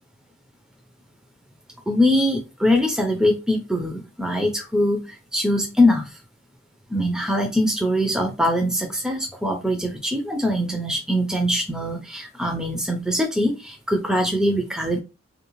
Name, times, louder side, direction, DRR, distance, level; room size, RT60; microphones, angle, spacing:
voice 1, 1.9-6.1 6.9-15.0, left 1 dB, 5° right, 2 dB, 0.4 m, -22 dB
2.6 x 2.1 x 2.9 m, 0.28 s
head